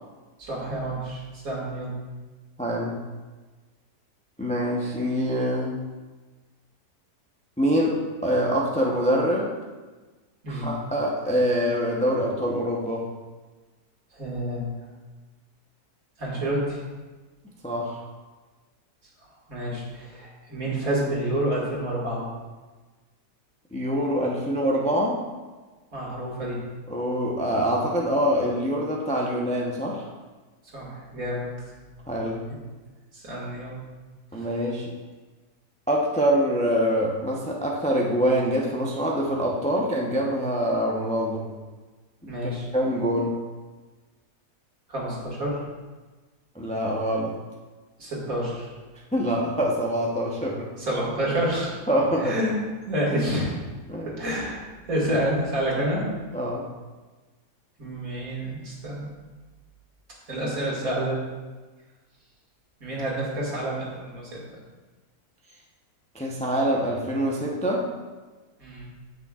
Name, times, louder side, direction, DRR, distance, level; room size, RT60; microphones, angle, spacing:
voice 1, 0.4-1.9 10.4-10.7 14.1-14.7 16.2-16.8 19.5-22.3 25.9-26.6 30.7-31.5 32.5-32.6 33.1-33.8 34.3-34.5 42.3-42.7 44.9-45.6 48.0-48.7 50.8-51.8 52.2-52.5 52.9-53.5 54.1-54.6 54.9-56.0 57.8-59.1 60.3-61.2 62.8-64.4 68.6-68.9, right 1 dB, 55° right, -5 dB, 2.5 m, -28 dB
voice 2, 2.6-3.0 4.4-5.8 7.6-9.5 10.5-13.1 17.6-18.0 23.7-25.2 26.9-30.1 32.1-32.5 34.3-34.9 35.9-41.5 42.7-43.4 46.5-47.3 49.1-50.7 51.9-52.4 53.9-54.2 56.3-56.6 66.1-67.9, equal, 5° left, -2 dB, 0.5 m, -25 dB
9.3 x 8.6 x 2.4 m, 1.3 s
omnidirectional pair, 1.7 m